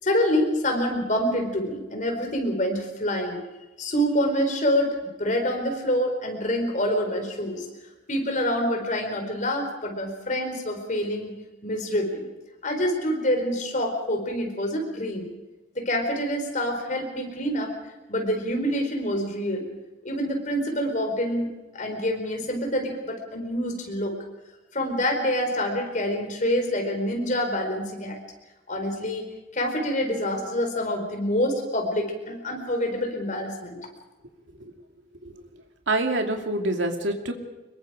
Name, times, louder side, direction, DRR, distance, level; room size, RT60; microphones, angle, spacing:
voice 1, 0.0-3.4 3.8-7.7 8.1-11.3 11.6-12.3 12.6-15.3 15.7-17.8 18.1-19.7 20.0-24.1 24.7-28.2 28.7-29.3 29.5-33.8, equal, 40° left, 4 dB, 4.5 m, -26 dB
voice 2, 35.9-37.3, right 2 dB, 75° right, 4 dB, 2.7 m, -26 dB
25.5 x 22.5 x 5.1 m, 1.1 s
head